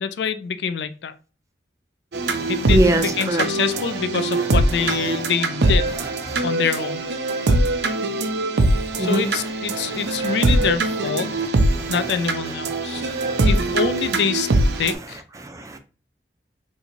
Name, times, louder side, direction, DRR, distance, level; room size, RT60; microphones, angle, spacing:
voice 1, 0.0-1.1 2.5-5.9 6.4-7.0 9.0-11.3 11.9-13.1 13.4-14.5 14.8-15.2, left 6 dB, 70° left, 0.3 m, -25 dB
sound 1, 2.1-14.9, right 2 dB, 65° right, 0.5 m, -22 dB
voice 2, 2.3-3.5 6.3-6.4 9.0-9.3 9.7-10.0 11.7-11.9 12.9-13.5 15.4-15.8, right 1 dB, 20° right, 0.4 m, -24 dB
3.7 x 2.6 x 3.0 m
head